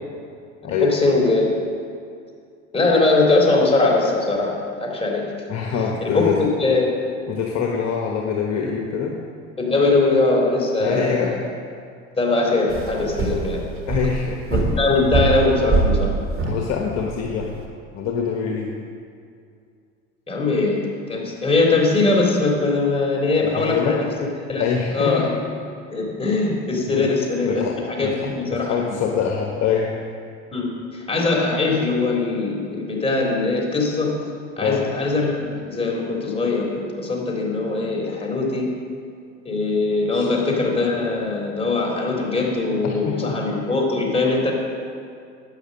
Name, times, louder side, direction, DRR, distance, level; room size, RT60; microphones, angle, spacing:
voice 1, 0.8-1.5 2.7-5.3 6.0-6.9 9.6-11.4 12.2-13.6 14.5-16.1 20.3-20.8 21.1-24.1 24.5-24.7 24.9-25.3 25.9-29.0 30.5-34.1 34.6-38.7 39.5-44.5, left 3 dB, 15° left, -2 dB, 3.6 m, -21 dB
voice 2, 5.5-6.5 7.3-9.2 10.8-11.3 13.9-14.4 16.5-17.6 17.9-18.8 23.4-24.0 24.6-25.3 26.9-27.1 27.4-30.0 34.6-34.8 40.1-40.3 42.8-43.4, left 6 dB, 45° left, 1 dB, 1.3 m, -24 dB
sound 1, 12.7-17.6, right 3 dB, 35° right, 2.5 m, -24 dB
12.0 x 9.1 x 6.5 m, 2.3 s
figure-of-eight pair, 65°, 37 cm